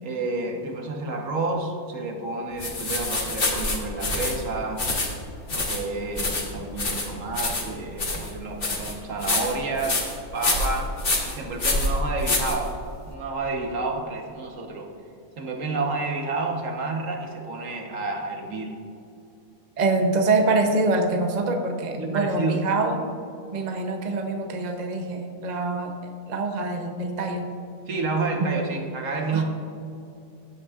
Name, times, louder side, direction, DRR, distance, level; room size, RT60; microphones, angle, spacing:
voice 1, 0.0-4.8 5.5-10.0 10.3-10.9 11.2-12.7 13.0-14.9 15.4-18.7 22.0-22.6 27.9-29.4, right 3 dB, 60° right, 2 dB, 1.5 m, -30 dB
sound 1, 2.6-13.1, left 2 dB, 40° left, 1.4 m, -27 dB
voice 2, 19.8-23.0 23.5-27.5 29.3-29.4, right 3 dB, 40° right, 3 dB, 0.7 m, -25 dB
15.0 x 8.3 x 2.4 m, 2.6 s
omnidirectional pair, 1.6 m